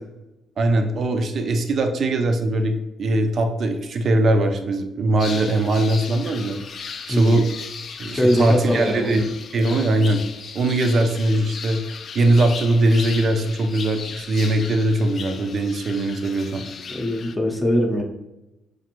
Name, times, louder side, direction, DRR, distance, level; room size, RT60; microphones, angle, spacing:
voice 1, 0.6-6.8 7.1-7.5 8.0-9.3 9.5-10.2 10.5-16.6, right 1 dB, 55° right, 5 dB, 0.5 m, -21 dB
sound 1, 5.2-17.4, left 6 dB, 55° left, 0.3 m, -37 dB
voice 2, 7.1-7.4 8.1-9.3 16.9-18.0, equal, 10° left, 0 dB, 0.7 m, -21 dB
4.9 x 2.5 x 2.9 m, 1.0 s
cardioid pair, 90°, 0 cm